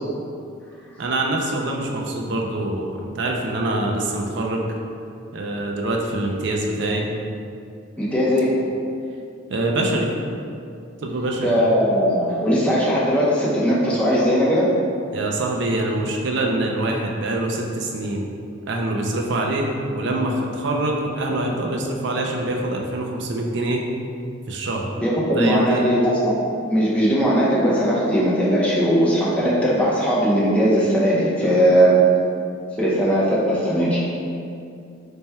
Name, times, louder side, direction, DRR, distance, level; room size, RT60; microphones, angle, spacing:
voice 1, 1.0-4.7 5.3-7.0 9.5-10.1 11.0-11.5 15.1-18.3 18.7-23.8 24.5-24.9 25.3-25.9, right 2 dB, 55° right, 0 dB, 0.4 m, -24 dB
voice 2, 8.0-8.6 11.4-14.7 25.0-26.3 26.6-32.0 32.8-34.0, equal, 5° left, -7 dB, 0.6 m, -19 dB
3.4 x 2.2 x 4.1 m, 2.5 s
head